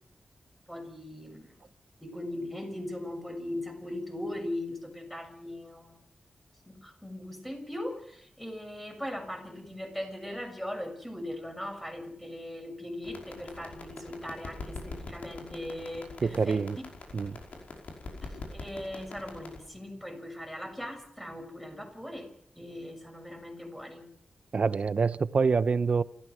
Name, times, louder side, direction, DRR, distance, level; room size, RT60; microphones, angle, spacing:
voice 1, 0.7-1.6 2.0-6.0 6.7-16.6 18.2-22.3 22.6-24.1, left 1 dB, 5° left, 4 dB, 6.6 m, -39 dB
sound 1, 13.0-19.6, left 3 dB, 85° left, 5.3 m, -44 dB
voice 2, 16.2-16.8 17.1-17.4 24.5-26.0, right 5 dB, 55° right, 16 dB, 0.8 m, -26 dB
29.0 x 14.5 x 6.3 m, 0.66 s
wide cardioid pair, 90°, 2 cm